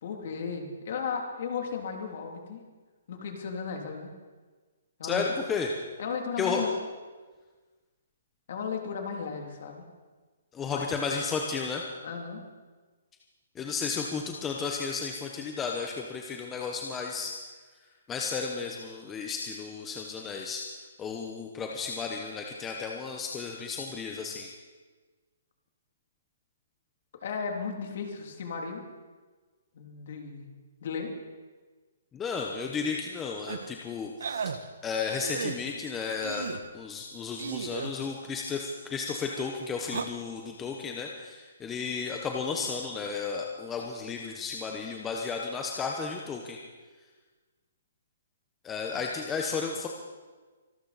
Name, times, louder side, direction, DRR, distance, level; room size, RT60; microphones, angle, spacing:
voice 1, 0.0-2.6 3.1-4.1 5.0-5.2 6.0-6.7 8.5-9.8 10.7-10.9 12.0-12.4 27.2-28.8 29.7-30.5 30.8-31.1, left 6 dB, 45° left, 2 dB, 2.7 m, -35 dB
voice 2, 5.0-5.7 6.4-6.6 10.5-11.9 13.5-17.3 18.1-24.5 32.1-34.5 34.8-46.6 48.6-49.9, left 5 dB, 10° left, 1 dB, 0.9 m, -33 dB
sound 1, 33.5-33.7 34.2-34.6 35.2-35.6 36.2-36.7 37.4-37.9 39.8-40.0, right 6 dB, 70° right, 1.1 m, -34 dB
25.0 x 12.5 x 4.2 m, 1.4 s
hypercardioid pair, 170°, 0 cm